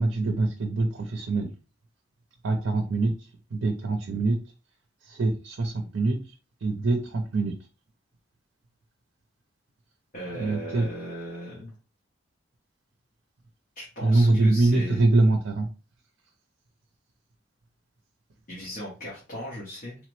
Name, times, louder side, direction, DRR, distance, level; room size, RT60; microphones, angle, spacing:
voice 1, 0.0-1.5 2.4-3.1 3.5-4.4 5.0-6.2 6.6-7.5 10.3-10.9 14.0-15.7, right 2 dB, 75° right, 4 dB, 0.5 m, -24 dB
voice 2, 10.1-11.7 13.8-15.1 18.5-20.0, equal, 45° left, -5 dB, 0.9 m, -38 dB
3.2 x 2.0 x 3.0 m, 0.33 s
head